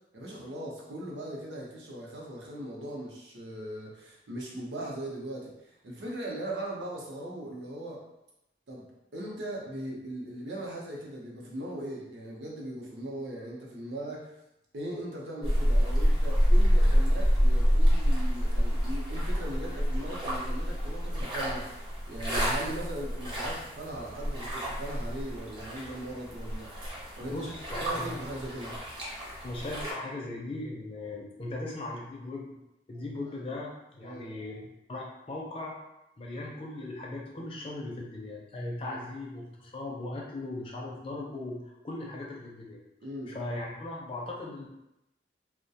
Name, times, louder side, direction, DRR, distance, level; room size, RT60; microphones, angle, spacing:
voice 1, 0.1-8.0 8.7-14.3 14.7-26.7 27.2-27.5 27.8-28.8 33.1-33.2 34.0-34.4 38.8-39.0 43.0-43.4, right 1 dB, 80° right, -3 dB, 0.6 m, -39 dB
sound 1, 15.4-29.9, equal, 25° right, 0.6 m, -27 dB
voice 2, 27.3-28.1 29.4-32.5 32.9-34.6 34.9-35.7 36.2-41.6 41.8-42.8 43.3-44.7, left 2 dB, 30° left, -2 dB, 0.4 m, -38 dB
2.3 x 2.1 x 2.7 m, 0.89 s
head